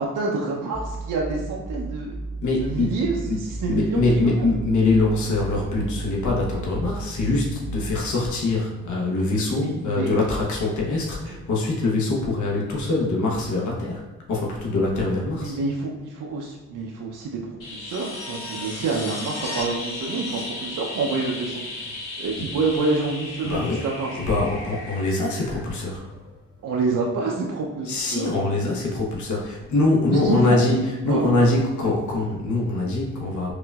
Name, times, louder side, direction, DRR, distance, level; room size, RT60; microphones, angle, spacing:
voice 1, 0.0-2.2 2.6-4.5 9.6-10.1 15.3-17.4 17.7-21.6 22.2-24.1 26.6-28.3 30.1-30.6 31.1-31.5, right 3 dB, 60° right, -1 dB, 0.6 m, -27 dB
sound 1, 0.7-8.1, right 3 dB, 5° right, 0.5 m, -34 dB
voice 2, 2.4-3.0 3.3-3.4 3.7-14.0 14.3-15.6 22.4-22.5 23.4-23.8 24.1-26.0 27.8-33.5, left 2 dB, 55° left, -3 dB, 1.0 m, -23 dB
sound 2, 17.6-26.3 28.6-28.7, left 2 dB, 90° left, 1.5 m, -35 dB
4.9 x 2.5 x 2.3 m, 1.2 s
hypercardioid pair, 45°, 35 cm